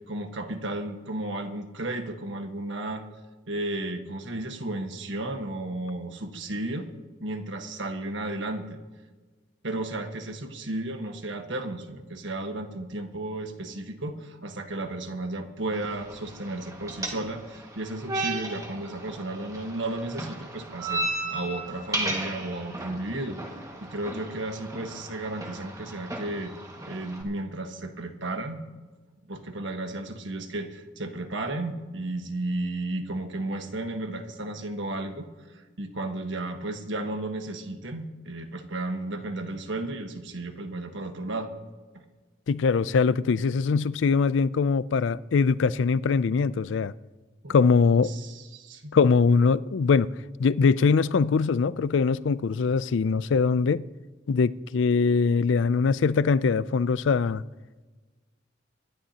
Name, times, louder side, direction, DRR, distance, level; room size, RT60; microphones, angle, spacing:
voice 1, 0.1-3.0 3.5-6.9 7.2-8.8 9.6-23.4 23.8-26.5 26.9-28.7 29.3-35.3 35.8-41.5 41.9-42.0 47.4-47.6 48.0-48.9, right 2 dB, 70° right, 1.4 m, -33 dB
sound 1, 15.7-27.2, right 2 dB, 15° right, 1.8 m, -35 dB
voice 2, 42.5-46.9 47.5-48.1 48.9-50.1 50.4-53.8 54.3-57.4, left 5 dB, 70° left, 0.4 m, -22 dB
24.5 x 11.5 x 2.9 m
head